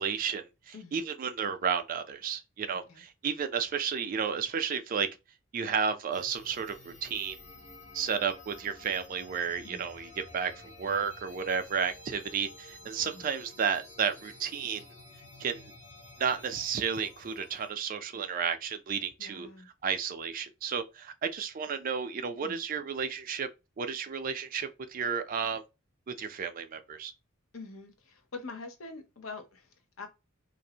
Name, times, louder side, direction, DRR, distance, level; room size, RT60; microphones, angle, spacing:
voice 1, 0.0-5.1 5.5-7.4 7.9-14.8 15.4-15.7 16.2-19.5 19.8-23.5 23.8-25.6 26.1-27.1, right 6 dB, 40° right, 0.4 m, -32 dB
voice 2, 0.7-1.1 2.9-3.0 9.6-9.8 13.1-13.3 19.2-19.7 22.4-22.6 27.5-30.1, left 3 dB, 75° left, 0.6 m, -45 dB
sound 1, 6.1-17.7, left 2 dB, 30° left, 0.7 m, -51 dB
2.5 x 2.0 x 2.7 m
head